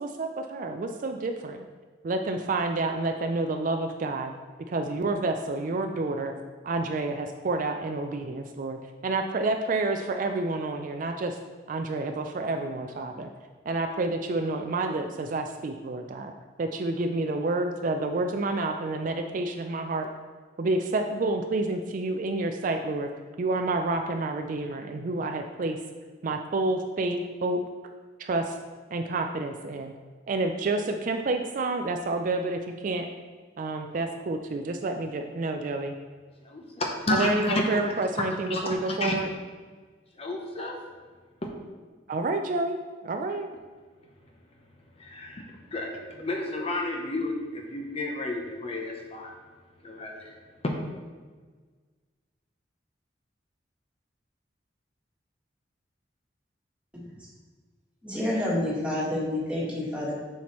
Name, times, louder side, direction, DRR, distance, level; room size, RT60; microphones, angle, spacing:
voice 1, 0.0-1.7 2.0-4.3 4.7-6.3 6.6-8.8 9.0-11.4 11.7-13.3 13.7-16.3 16.6-20.1 20.6-23.1 23.4-25.8 26.2-27.6 28.2-28.6 28.9-29.9 30.3-33.1 33.6-35.9 37.1-39.3 42.1-42.8 43.0-43.5, right 2 dB, 45° right, 5 dB, 0.4 m, -29 dB
voice 2, 36.4-37.8 38.2-39.2 40.1-40.8 41.4-41.5 44.2-44.6 45.0-49.4 49.8-50.4 50.6-50.7, left 1 dB, 35° left, 1 dB, 0.7 m, -31 dB
voice 3, 58.0-60.1, left 1 dB, 5° right, -6 dB, 1.7 m, -28 dB
7.2 x 5.7 x 3.0 m, 1.5 s
head